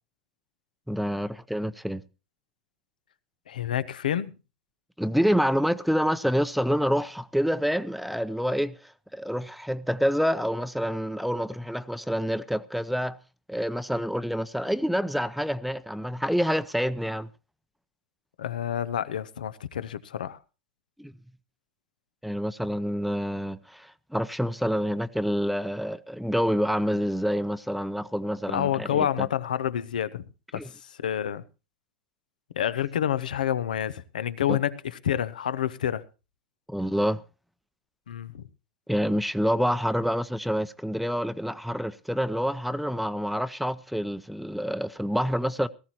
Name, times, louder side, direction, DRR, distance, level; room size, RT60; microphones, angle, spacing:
voice 1, 0.9-2.0 5.0-13.2 13.5-17.3 21.0-21.1 22.2-29.3 30.5-30.7 34.5-34.6 36.7-37.2 38.9-45.7, equal, ahead, 0.7 m, -27 dB
voice 2, 3.5-4.3 18.4-20.4 28.5-30.2 30.5-30.6 31.0-31.4 32.6-34.7 35.0-36.0 38.1-38.4, left 10 dB, 85° left, 0.9 m, -28 dB
18.0 x 14.0 x 2.9 m
hypercardioid pair, 105°, 4 cm